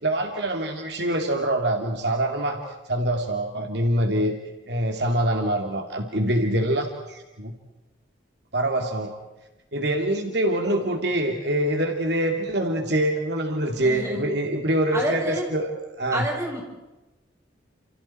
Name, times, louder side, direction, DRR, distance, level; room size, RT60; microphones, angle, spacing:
voice 1, 0.0-2.6 2.9-4.3 4.7-7.5 8.5-9.1 9.7-15.7 16.0-16.2, right 1 dB, 60° right, 3 dB, 2.7 m, -24 dB
voice 2, 13.8-14.3 14.9-15.5 16.1-16.6, right 1 dB, 15° right, -1 dB, 7.2 m, -28 dB
30.0 x 29.0 x 4.5 m, 1.1 s
head